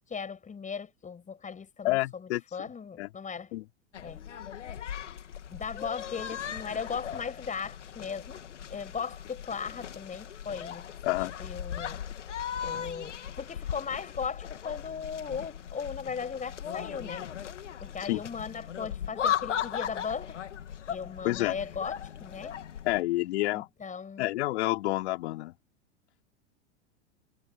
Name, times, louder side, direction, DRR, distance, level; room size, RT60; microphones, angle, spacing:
voice 1, 0.1-3.5 4.0-4.2 5.5-12.1 12.6-17.3 17.8-20.5 20.9-22.6 23.5-24.3, left 6 dB, 20° left, 5.9 m, -38 dB
voice 2, 1.8-2.7 3.0-3.1 3.5-3.6 11.0-11.3 18.0-18.2 21.2-21.6 22.8-23.7 24.2-25.6, left 18 dB, 65° left, 4.4 m, -29 dB
sound 1, 3.9-23.0, left 9 dB, 85° left, 2.6 m, -38 dB
hypercardioid pair, 95°, 36 cm